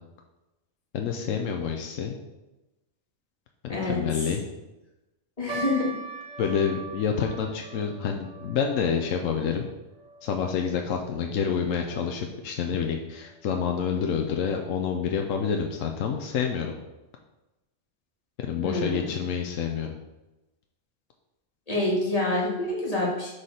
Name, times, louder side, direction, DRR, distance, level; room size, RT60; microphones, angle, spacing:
voice 1, 0.9-2.2 3.6-4.4 6.4-9.7 10.2-16.7 18.4-19.9, left 7 dB, 85° left, 3 dB, 1.1 m, -28 dB
voice 2, 5.4-5.9 18.6-19.1 21.7-23.3, left 2 dB, 30° left, -4 dB, 2.2 m, -27 dB
sound 1, 5.5-12.0 12.2-12.3 13.1-13.4 14.0-14.1 14.4-14.6, right 3 dB, 35° right, 1.5 m, -42 dB
6.6 x 4.9 x 5.6 m, 1.0 s
omnidirectional pair, 1.3 m